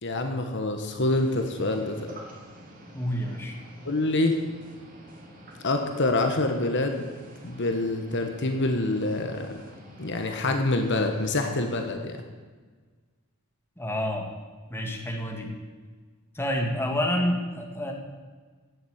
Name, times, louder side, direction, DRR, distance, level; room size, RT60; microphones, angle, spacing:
voice 1, 0.0-2.1 3.8-4.4 5.6-7.1 7.4-9.5 10.0-12.2, left 2 dB, 50° left, 5 dB, 1.3 m, -26 dB
sound 1, 1.1-11.8, equal, 40° right, 2.7 m, -48 dB
voice 2, 2.9-3.5 13.8-14.3 14.7-15.5 16.3-17.9, equal, 10° left, 1 dB, 1.9 m, -28 dB
16.5 x 7.3 x 8.1 m, 1.4 s
head